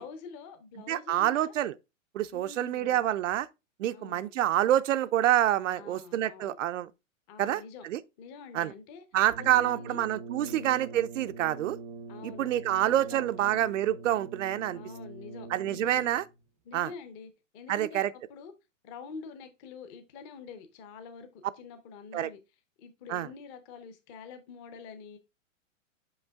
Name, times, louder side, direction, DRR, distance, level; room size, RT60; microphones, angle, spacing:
voice 1, 0.0-1.5 2.3-3.1 3.9-4.3 5.8-6.6 7.3-7.8 8.2-9.0 9.4-10.0 10.4-10.8 12.1-12.5 12.8-13.7 14.7-16.0 16.6-18.5 18.8-22.4 22.8-25.2, left 5 dB, 20° left, 0.6 m, -46 dB
voice 2, 0.9-1.7 2.1-3.5 3.8-6.9 7.4-7.6 7.9-8.0 8.5-8.7 9.1-11.8 12.2-14.8 15.5-16.2 16.7-16.9 17.7-18.1 22.1-22.3 23.1-23.3, right 12 dB, 70° right, 0.6 m, -27 dB
Brass instrument, 9.3-16.4, right 4 dB, 30° right, 0.6 m, -44 dB
5.4 x 5.4 x 3.5 m
hypercardioid pair, 160°, 39 cm